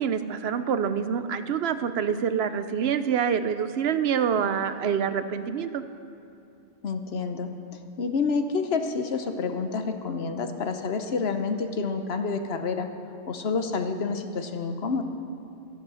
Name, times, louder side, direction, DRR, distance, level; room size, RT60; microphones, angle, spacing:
voice 1, 0.0-5.8, right 7 dB, 70° right, 11 dB, 0.9 m, -26 dB
voice 2, 6.8-7.5 8.0-12.9 13.3-15.0, left 4 dB, 70° left, 7 dB, 1.1 m, -28 dB
12.5 x 11.0 x 6.3 m, 2.8 s
omnidirectional pair, 1.1 m